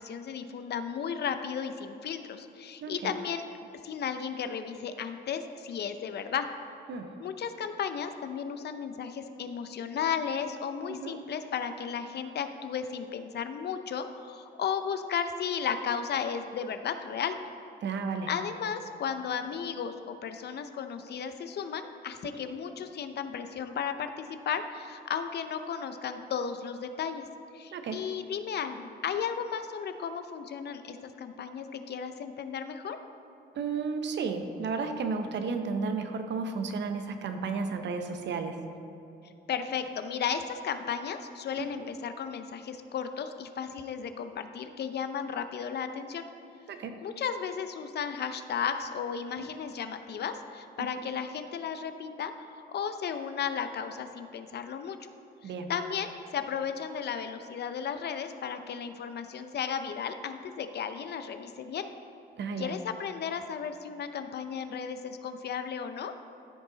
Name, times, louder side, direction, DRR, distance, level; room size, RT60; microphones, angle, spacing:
voice 1, 0.0-3.4 3.8-6.5 7.2-17.4 18.3-27.2 27.5-33.0 39.5-46.3 47.0-52.3 52.7-55.0 55.4-61.9 62.6-66.1, left 7 dB, 55° left, 9 dB, 0.6 m, -34 dB
voice 2, 2.8-3.1 6.9-7.1 10.9-11.2 17.8-18.3 22.2-22.3 27.7-28.0 33.5-38.6 41.6-41.9 46.7-47.0 49.4-49.5 50.8-50.9 55.4-55.7 62.4-62.7, right 4 dB, 65° right, 6 dB, 0.9 m, -33 dB
14.0 x 5.4 x 4.0 m, 2.8 s
cardioid pair, 90°, 20 cm